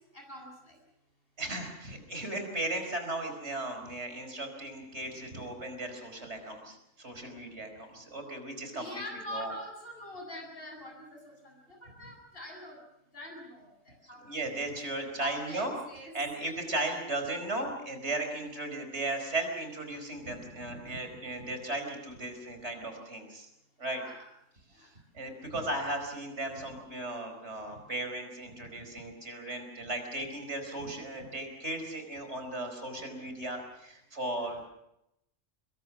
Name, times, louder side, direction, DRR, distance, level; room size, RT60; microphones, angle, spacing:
voice 1, 0.1-0.8 8.7-12.8 13.1-14.2 14.6-14.7 15.2-16.1 23.8-24.2 24.8-24.9, left 1 dB, 45° left, 1 dB, 8.3 m, -44 dB
voice 2, 1.4-8.9 9.3-9.5 14.2-15.7 16.1-23.5 23.8-24.0 24.8-24.9 25.1-34.7, right 2 dB, 60° right, 5 dB, 5.1 m, -36 dB
25.5 x 23.0 x 6.1 m, 0.80 s
omnidirectional pair, 1.3 m